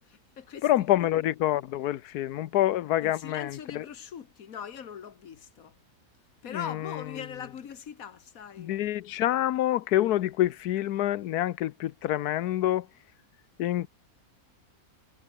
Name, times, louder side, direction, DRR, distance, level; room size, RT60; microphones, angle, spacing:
voice 1, 0.0-0.7 3.0-5.7 6.4-8.7, left 8 dB, 65° left, 1.7 m, -41 dB
voice 2, 0.6-3.8 6.5-7.0 8.6-12.9 13.6-13.9, left 13 dB, 90° left, 1.2 m, -27 dB
omnidirectional pair, 1.6 m